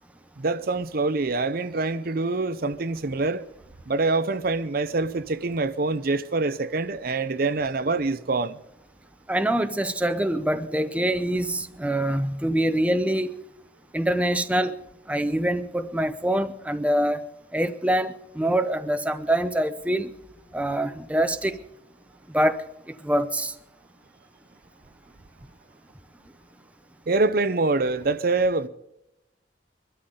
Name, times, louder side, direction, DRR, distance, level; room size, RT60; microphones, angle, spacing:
voice 1, 0.4-3.4 3.9-8.6 27.1-28.7, right 3 dB, 50° right, 0.7 m, -25 dB
voice 2, 9.3-13.3 13.9-14.7 15.1-17.2 17.5-20.1 20.5-21.6 22.3-23.5, right 1 dB, 5° right, 0.6 m, -25 dB
24.0 x 12.5 x 3.8 m
head